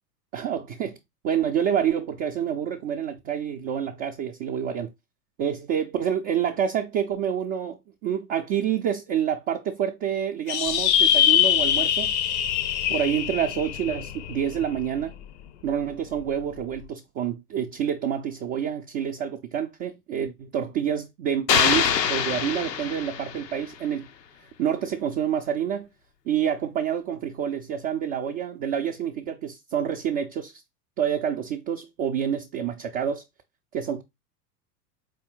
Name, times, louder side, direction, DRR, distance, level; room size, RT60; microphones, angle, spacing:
voice 1, 0.3-1.0 1.2-4.9 5.4-12.1 12.9-15.1 15.6-24.1 24.6-25.9 26.3-30.5 31.0-33.2 33.7-34.0, right 9 dB, 25° right, 0.4 m, -28 dB
sound 1, 10.5-15.2, left 10 dB, 45° left, 0.5 m, -23 dB
sound 2, 21.5-23.6, left 7 dB, 90° left, 0.6 m, -24 dB
4.3 x 2.7 x 3.5 m
figure-of-eight pair, 90°, 48 cm